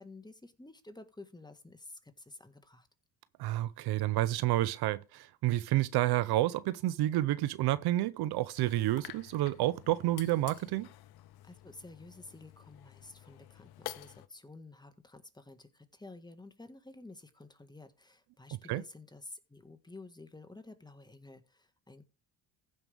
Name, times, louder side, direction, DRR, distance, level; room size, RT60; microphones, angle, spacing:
voice 1, 0.0-2.9 11.4-22.0, left 2 dB, 10° left, 1.7 m, -51 dB
voice 2, 3.4-10.9 18.7-18.8, right 15 dB, 65° right, 0.7 m, -29 dB
sound 1, 8.5-14.3, left 14 dB, 65° left, 0.8 m, -50 dB
15.5 x 5.4 x 3.5 m
supercardioid pair, 70°, 41 cm